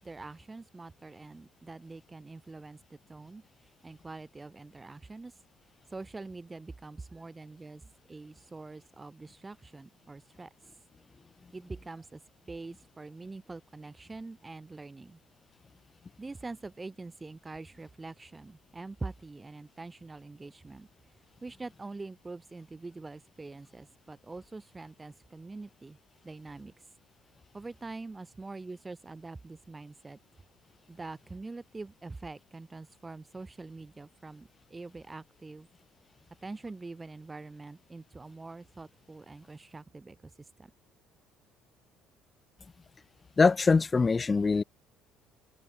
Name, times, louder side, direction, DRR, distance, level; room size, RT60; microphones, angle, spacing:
voice 1, 0.0-5.4 5.9-10.8 11.5-12.2 12.5-15.2 16.2-20.9 21.4-26.0 26.2-26.9 27.5-30.2 30.9-35.7 36.4-40.7, right 3 dB, 20° right, 5.3 m, -44 dB
voice 2, 43.4-44.6, left 4 dB, 30° left, 1.0 m, -23 dB
open air
supercardioid pair, 70°, 0 cm